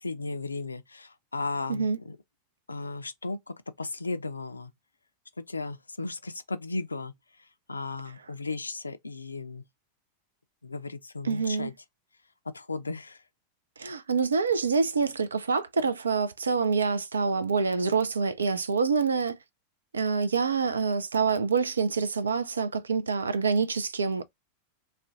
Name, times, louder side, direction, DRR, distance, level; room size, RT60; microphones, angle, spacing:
voice 1, 0.0-2.2 2.7-4.7 5.5-7.1 7.7-9.6 10.6-11.7 12.5-13.2, left 3 dB, 80° left, 0.3 m, -35 dB
voice 2, 11.2-11.7 13.8-19.4 19.9-24.2, right 5 dB, 75° right, 0.4 m, -26 dB
2.4 x 2.1 x 3.7 m
figure-of-eight pair, 90°, 0 cm